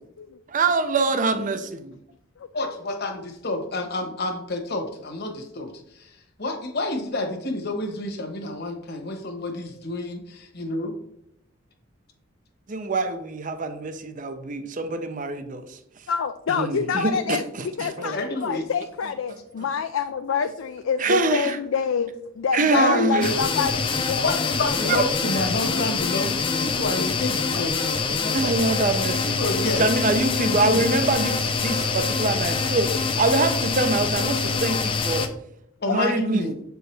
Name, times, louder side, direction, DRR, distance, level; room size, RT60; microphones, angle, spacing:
voice 1, 0.5-1.9 12.7-15.8 16.5-18.2 21.0-21.6 22.5-23.3 24.9-25.0 28.3-29.4 29.7-35.3 35.9-36.6, right 3 dB, 40° right, 9 dB, 0.5 m, -24 dB
voice 2, 2.5-10.9 18.1-18.6 22.7-23.3 24.2-28.5 28.9-29.0 29.4-29.8 30.4-30.8 35.8-36.5, left 2 dB, 55° left, 3 dB, 1.2 m, -29 dB
voice 3, 16.1-24.4 27.5-27.7 31.7-31.9 34.5-34.8 35.8-36.2, left 6 dB, 75° left, 8 dB, 0.4 m, -27 dB
sound 1, 23.2-35.3, left 4 dB, 25° left, 0.5 m, -25 dB
7.5 x 4.6 x 3.3 m, 0.74 s
head